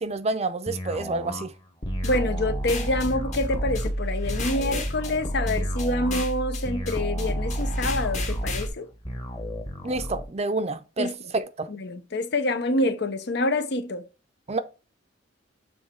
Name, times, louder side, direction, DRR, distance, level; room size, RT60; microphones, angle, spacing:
voice 1, 0.0-1.5 9.8-11.7 14.5-14.6, right 3 dB, 35° right, 0.6 m, -28 dB
sound 1, 0.7-10.3, equal, 20° left, 1.1 m, -35 dB
sound 2, 1.8-8.7, equal, 40° left, 1.4 m, -30 dB
voice 2, 2.0-8.9 11.0-11.2 11.7-14.1, left 2 dB, 60° left, 0.7 m, -27 dB
7.2 x 3.2 x 4.4 m
head